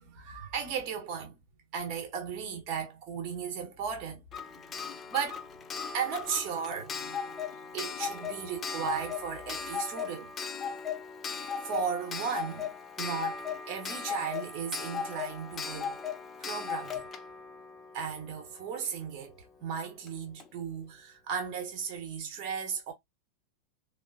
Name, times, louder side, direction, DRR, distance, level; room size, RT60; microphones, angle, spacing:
voice 1, 0.0-1.4 1.7-4.2 4.6-10.3 11.6-16.0 16.4-17.1 17.9-22.9, right 7 dB, 40° right, 1.0 m, -36 dB
Clock, 4.3-18.9 20.1-20.2 20.4-20.5, left 6 dB, 25° left, 0.4 m, -38 dB
3.6 x 2.0 x 2.5 m
figure-of-eight pair, 90°, 0 cm